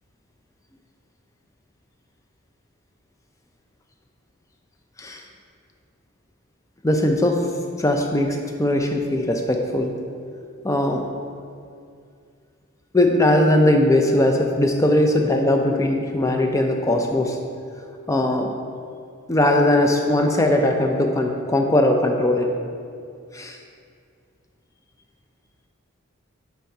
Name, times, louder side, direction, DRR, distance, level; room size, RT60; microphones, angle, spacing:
voice 1, 6.8-7.5 7.8-9.9 10.6-11.0 12.9-17.4 18.1-18.5 19.3-22.5 23.3-23.6, left 1 dB, 15° left, 3 dB, 0.4 m, -19 dB
10.0 x 4.6 x 2.7 m, 2.3 s
head